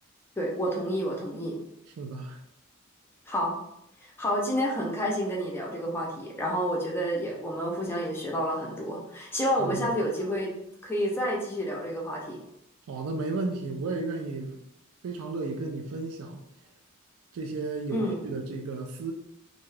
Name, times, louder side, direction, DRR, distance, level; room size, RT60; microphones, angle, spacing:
voice 1, 0.4-1.5 3.3-3.5 4.0-10.5 10.8-12.4 17.9-18.2, equal, 10° left, 0.5 m, -29 dB
voice 2, 2.0-2.4 9.6-9.9 12.9-14.6 15.0-16.4 17.3-19.1, right 3 dB, 80° right, 0.4 m, -33 dB
2.6 x 2.3 x 3.1 m
head